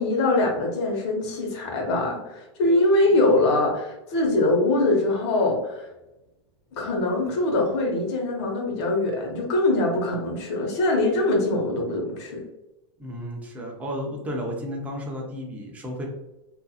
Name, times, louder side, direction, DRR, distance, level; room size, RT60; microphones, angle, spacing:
voice 1, 0.0-5.9 6.7-12.4, left 2 dB, 60° left, 1 dB, 0.9 m, -23 dB
voice 2, 13.0-16.1, equal, 10° right, -1 dB, 0.5 m, -33 dB
2.7 x 2.4 x 2.3 m, 0.94 s
supercardioid pair, 155°, 17 cm